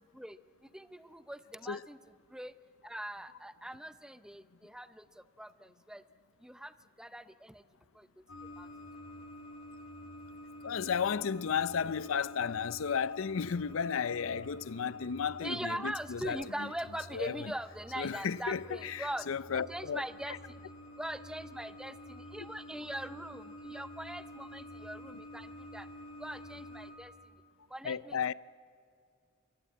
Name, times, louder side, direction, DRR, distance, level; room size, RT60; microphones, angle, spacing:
voice 1, 0.7-2.0 2.3-2.5 2.8-5.0 5.4-6.0 6.4-6.7 7.0-7.6 8.6-8.7 15.4-19.3 19.5-20.4 21.0-25.9 26.2-27.1 27.7-28.3, right 1 dB, 5° right, 0.6 m, -41 dB
sound 1, 8.3-26.9, equal, 85° left, 6.4 m, -50 dB
voice 2, 10.6-16.7 17.1-17.5 18.0-20.4 22.4-22.5 27.8-28.3, left 6 dB, 70° left, 0.5 m, -34 dB
24.0 x 23.5 x 8.5 m
head